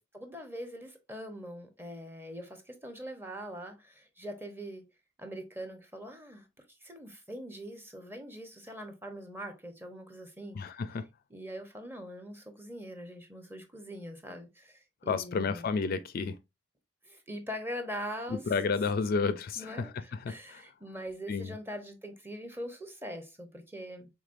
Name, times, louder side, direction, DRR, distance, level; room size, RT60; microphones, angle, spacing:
voice 1, 0.0-4.8 5.2-6.5 6.8-10.6 11.3-15.7 17.0-18.7 19.6-24.1, equal, 10° right, 0.8 m, -42 dB
voice 2, 10.6-11.1 15.1-16.4 18.3-19.9 20.2-20.6 21.3-21.6, left 4 dB, 45° left, 0.4 m, -31 dB
5.0 x 3.6 x 2.5 m
head